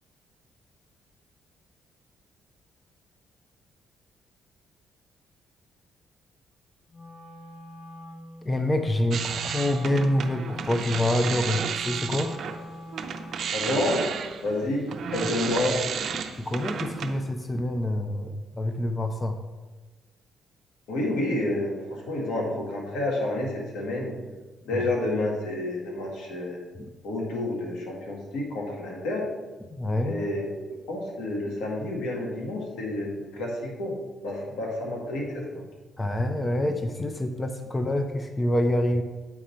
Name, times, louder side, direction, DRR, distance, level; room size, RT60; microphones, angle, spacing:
Wind instrument woodwind instrument, 6.9-13.6, left 1 dB, 50° left, 1.4 m, -44 dB
voice 1, 8.4-12.3 16.3-19.3 24.7-24.8 26.8-26.9 29.7-30.2 36.0-39.0, left 1 dB, 20° left, 6 dB, 0.6 m, -26 dB
sound 1, 9.1-12.6 12.9-17.2, right 7 dB, 60° right, 0.6 m, -32 dB
voice 2, 13.5-14.0 14.4-15.8 20.9-24.1 24.6-26.6 27.0-29.3 30.0-30.6 30.9-34.0 34.2-35.5, left 1 dB, 90° left, -1 dB, 1.7 m, -29 dB
9.0 x 3.8 x 4.3 m, 1.2 s
cardioid pair, 90°, 0 cm